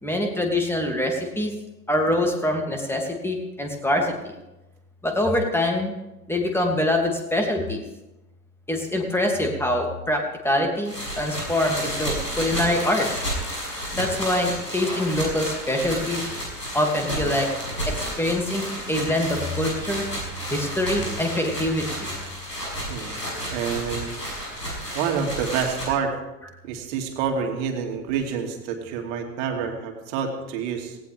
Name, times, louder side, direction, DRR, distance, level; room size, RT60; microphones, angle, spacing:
voice 1, 0.0-1.5 1.9-4.1 5.0-5.9 6.3-7.8 8.7-13.1 13.9-16.3 16.7-17.5 17.9-20.1 20.5-22.1, left 1 dB, 5° left, 2 dB, 2.9 m, -24 dB
sound 1, 10.8-25.9, equal, 90° left, 6.5 m, -31 dB
voice 2, 17.0-17.4 21.0-21.2 22.9-23.2 23.5-24.2 24.9-26.1 26.6-31.0, right 6 dB, 45° right, 3 dB, 2.9 m, -28 dB
18.0 x 18.0 x 3.7 m, 0.98 s
figure-of-eight pair, 85°, 48 cm